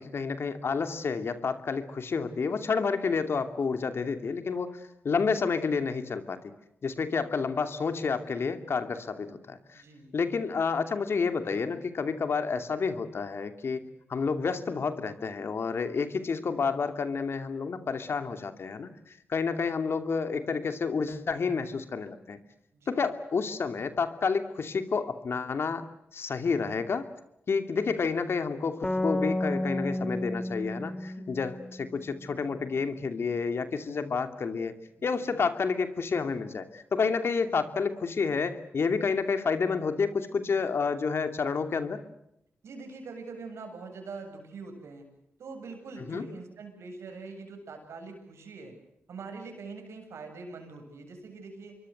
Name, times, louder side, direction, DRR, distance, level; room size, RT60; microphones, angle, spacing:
voice 1, 0.0-6.4 6.8-9.8 10.1-13.8 14.1-22.4 22.9-25.8 26.1-27.1 27.5-34.7 35.0-42.0 46.1-46.3, left 5 dB, 65° left, 8 dB, 2.7 m, -30 dB
voice 2, 9.7-10.1 22.7-23.0 35.0-35.4 42.6-45.0 45.4-48.7 49.1-51.8, right 4 dB, 85° right, 4 dB, 8.0 m, -43 dB
sound 1, 28.8-32.3, left 1 dB, 20° left, 2.7 m, -32 dB
27.0 x 23.0 x 8.0 m, 0.81 s
cardioid pair, 60°, 5 cm